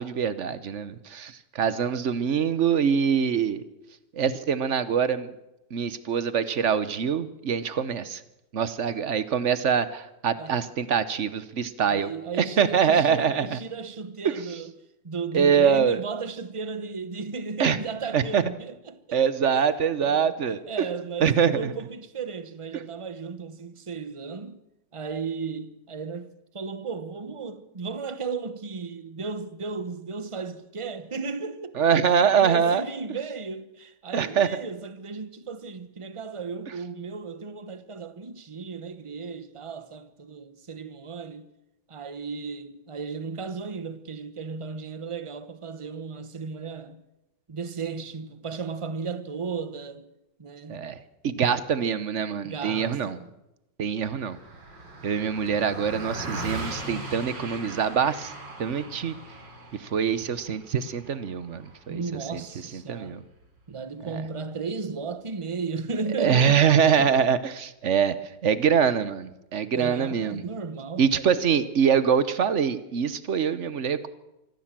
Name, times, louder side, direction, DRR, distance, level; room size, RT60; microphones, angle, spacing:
voice 1, 0.0-3.6 4.1-5.3 5.7-8.2 8.5-12.1 12.4-13.6 14.2-14.4 15.3-16.0 17.6-17.8 18.1-18.4 19.1-20.6 21.2-21.7 31.8-32.8 34.1-34.5 50.7-51.0 51.2-53.2 53.8-54.4 55.0-58.3 58.6-59.1 59.8-62.0 62.3-62.4 62.9-63.2 64.1-64.2 66.2-68.2 68.4-70.4 71.0-74.1, right 7 dB, 50° right, 1.1 m, -24 dB
voice 2, 10.4-10.7 11.9-14.7 15.0-19.2 19.5-19.6 20.0-20.3 20.7-24.6 24.9-31.7 32.0-41.5 41.9-47.1 47.5-50.1 50.4-51.0 51.7-52.0 52.4-53.3 61.9-63.2 63.7-67.1 69.7-71.3, right 4 dB, 25° right, 0.7 m, -35 dB
Car passing by, 54.0-63.6, right 2 dB, 70° right, 4.0 m, -39 dB
24.5 x 15.0 x 7.5 m
omnidirectional pair, 2.0 m